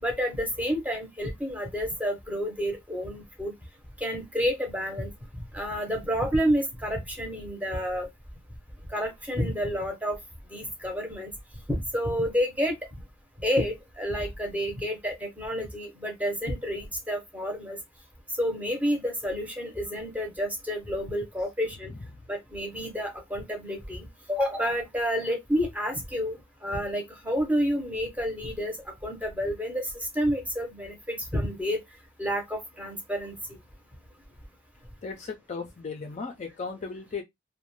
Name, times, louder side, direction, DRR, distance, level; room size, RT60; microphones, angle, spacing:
voice 1, 0.0-3.5 4.0-5.1 5.5-8.1 8.9-10.2 10.5-11.3 11.7-12.8 13.4-17.8 18.4-21.9 22.3-31.8 32.2-33.6, equal, 5° right, 0.7 m, -29 dB
voice 2, 35.0-37.2, left 4 dB, 35° left, 0.3 m, -36 dB
2.5 x 2.1 x 3.0 m
head